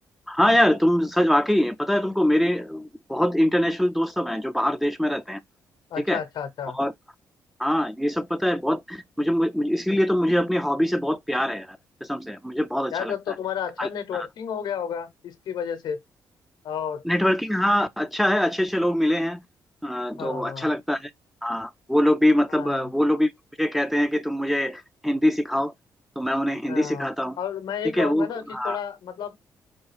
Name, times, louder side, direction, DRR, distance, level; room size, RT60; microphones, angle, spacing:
voice 1, 0.3-5.4 6.1-6.2 6.7-6.9 7.6-13.1 13.8-14.3 17.0-19.4 19.8-21.1 21.4-23.3 23.6-25.7 26.2-27.4 27.9-28.8, equal, ahead, 0.4 m, -23 dB
voice 2, 5.9-6.8 12.9-16.0 16.6-17.0 20.2-20.7 22.5-22.9 26.7-27.1 27.4-29.4, left 8 dB, 70° left, 0.7 m, -31 dB
4.4 x 2.3 x 3.2 m
hypercardioid pair, 50°, 8 cm